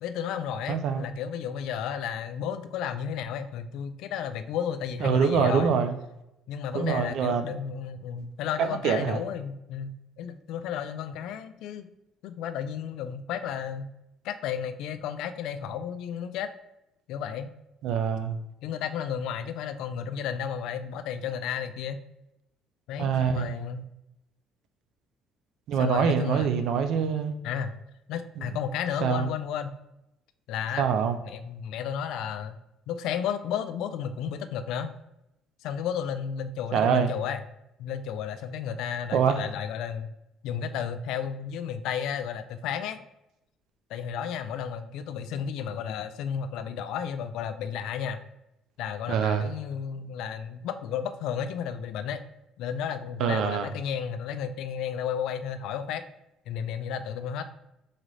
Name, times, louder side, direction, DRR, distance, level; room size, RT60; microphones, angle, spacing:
voice 1, 0.0-5.7 6.5-11.9 12.2-13.9 14.2-16.5 17.1-17.5 18.6-22.0 22.9-23.9 25.8-26.5 27.4-27.7 28.1-29.7 30.5-30.9 31.2-32.6 32.9-34.9 35.6-37.4 37.8-40.1 40.4-43.0 43.9-48.2 48.8-52.2 52.6-56.0 56.5-57.4, left 8 dB, 75° left, 10 dB, 0.4 m, -33 dB
voice 2, 0.7-1.1 5.0-6.0 6.7-7.5 8.6-9.2 17.8-18.4 23.0-23.5 25.7-27.3 28.4-28.5 29.0-29.3 30.8-31.2 36.7-37.1 39.1-39.5 49.1-49.5 53.2-53.7, right 7 dB, 70° right, 8 dB, 0.5 m, -25 dB
3.9 x 3.8 x 3.2 m, 0.87 s
cardioid pair, 105°, 0 cm